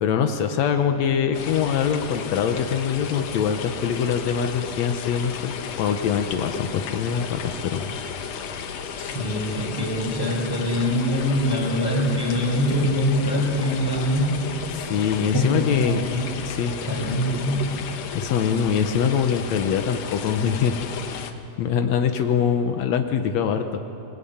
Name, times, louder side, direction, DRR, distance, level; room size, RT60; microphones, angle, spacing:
voice 1, 0.0-5.5 5.8-7.9 14.7-16.0 16.4-16.7 18.1-20.8 21.6-23.8, left 7 dB, 90° left, 6 dB, 1.5 m, -23 dB
sound 1, 1.3-21.3, left 7 dB, 70° left, 1.6 m, -34 dB
voice 2, 9.0-14.5 15.3-16.5 16.9-18.0, equal, 5° left, -2 dB, 5.8 m, -24 dB
27.0 x 21.0 x 8.8 m, 2.8 s
omnidirectional pair, 4.7 m